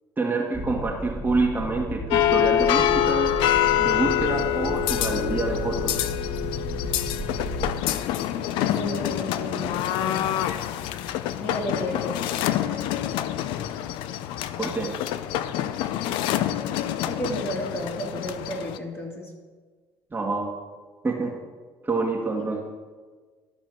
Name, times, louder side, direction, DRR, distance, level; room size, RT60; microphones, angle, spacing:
voice 1, 0.2-3.3 3.8-5.9 12.7-12.8 14.6-14.9 20.1-20.4 21.0-21.3 21.8-22.6, right 3 dB, 25° right, -1 dB, 1.6 m, -27 dB
sound 1, 0.5-7.8, equal, 5° right, 1.0 m, -34 dB
sound 2, 2.1-18.8, left 11 dB, 80° left, 0.5 m, -26 dB
voice 2, 8.6-10.3 11.4-12.4 17.0-19.3 22.4-22.5, equal, 30° left, -1 dB, 2.7 m, -33 dB
12.0 x 4.4 x 6.1 m, 1.4 s
supercardioid pair, 75°, 8 cm